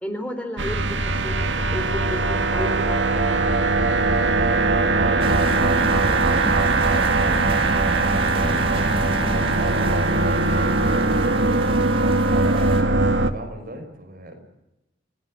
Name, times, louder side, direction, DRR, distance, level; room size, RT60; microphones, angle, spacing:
voice 1, 0.0-3.4, left 1 dB, 10° left, 5 dB, 3.8 m, -32 dB
sound 1, 0.6-13.3, right 3 dB, 80° right, 1.9 m, -21 dB
voice 2, 4.9-14.4, right 1 dB, 50° right, 4 dB, 6.0 m, -37 dB
sound 2, 5.2-12.8, right 1 dB, 30° right, 3.1 m, -29 dB
29.5 x 18.0 x 7.8 m, 0.90 s
head